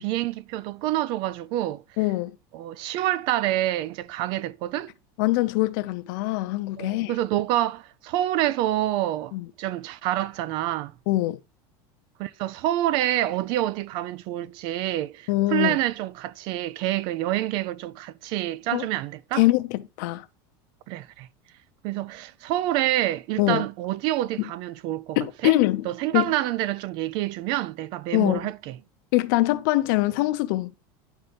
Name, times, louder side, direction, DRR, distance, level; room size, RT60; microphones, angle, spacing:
voice 1, 0.0-1.8 2.5-4.9 6.8-9.3 9.6-10.9 12.2-19.4 20.9-21.3 21.8-25.2 25.4-25.5 25.9-28.8, right 14 dB, 40° right, 0.4 m, -27 dB
voice 2, 2.0-2.4 5.2-7.1 9.3-9.5 11.1-11.4 15.3-15.8 18.7-18.8 19.3-20.2 23.4-23.6 25.2-25.9 26.1-26.3 28.1-28.5 29.1-30.7, left 18 dB, 55° left, 0.7 m, -23 dB
10.5 x 4.1 x 5.2 m
supercardioid pair, 175°, 12 cm